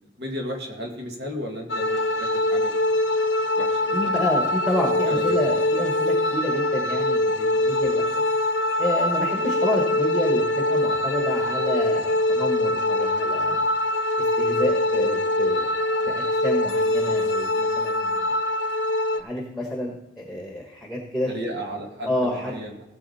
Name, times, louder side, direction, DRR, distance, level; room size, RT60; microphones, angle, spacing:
voice 1, 0.2-3.0 3.5-4.2 5.1-5.4 17.0-17.1 21.3-22.8, equal, 60° right, 0 dB, 2.3 m, -34 dB
sound 1, 1.7-19.2, left 1 dB, 70° left, 0.8 m, -23 dB
voice 2, 3.9-8.0 8.8-13.6 14.2-18.3 19.1-21.3 22.0-22.5, left 1 dB, ahead, -1 dB, 1.5 m, -29 dB
16.5 x 7.4 x 4.3 m, 0.91 s
head